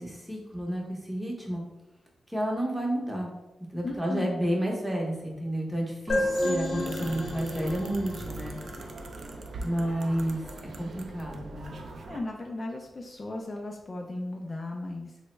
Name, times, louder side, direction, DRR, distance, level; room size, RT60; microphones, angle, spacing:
voice 1, 0.0-1.6 2.3-3.3 3.7-8.6 9.6-10.4 10.8-11.8, right 1 dB, 5° right, -1 dB, 0.8 m, -31 dB
voice 2, 3.8-4.3 12.1-15.1, left 2 dB, 35° left, 1 dB, 0.3 m, -36 dB
sound 1, 6.1-9.6, left 1 dB, 60° left, 0.7 m, -32 dB
sound 2, 6.1-12.2, right 2 dB, 65° right, 0.3 m, -41 dB
3.3 x 2.0 x 3.1 m, 0.96 s
cardioid pair, 85°, 0 cm